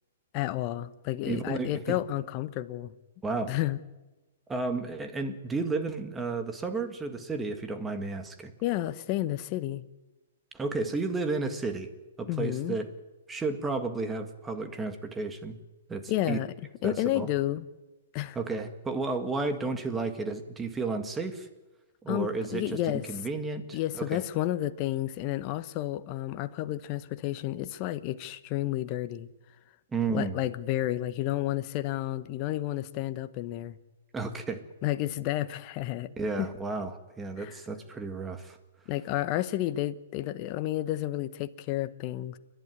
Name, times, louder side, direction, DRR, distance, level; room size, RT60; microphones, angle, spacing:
voice 1, 0.3-2.9 3.5-3.8 8.6-9.8 12.3-12.8 16.1-16.5 16.8-17.6 18.1-18.4 22.1-23.0 23.7-29.3 30.1-33.8 34.8-36.5 37.4-37.6 38.9-42.4, left 14 dB, 40° left, 13 dB, 1.0 m, -31 dB
voice 2, 1.3-2.0 3.2-3.5 4.5-8.5 10.5-11.9 12.2-12.9 13.3-15.6 15.9-16.4 16.8-17.3 18.3-21.5 22.0-22.8 23.1-24.2 29.9-30.4 34.1-34.6 36.2-38.6, right 3 dB, 10° right, 7 dB, 2.0 m, -32 dB
29.5 x 11.5 x 9.5 m, 1.1 s
hypercardioid pair, 120°, 0 cm